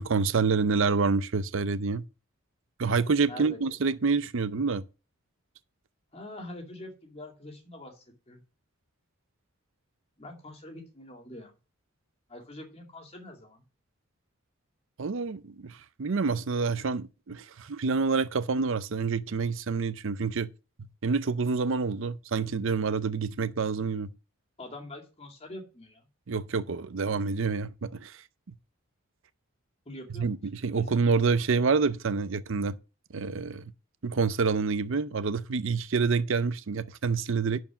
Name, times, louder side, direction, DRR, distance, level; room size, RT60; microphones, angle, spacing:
voice 1, 0.0-2.0 2.8-4.8 15.0-20.5 21.0-24.1 26.3-28.2 30.2-32.8 33.1-33.6 34.0-37.6, right 4 dB, 65° right, 0.6 m, -27 dB
voice 2, 3.2-3.6 6.1-8.4 10.2-11.5 12.3-13.6 24.6-26.0 29.9-30.3 30.7-30.9, left 1 dB, 30° left, 2.3 m, -44 dB
11.5 x 4.6 x 5.9 m
head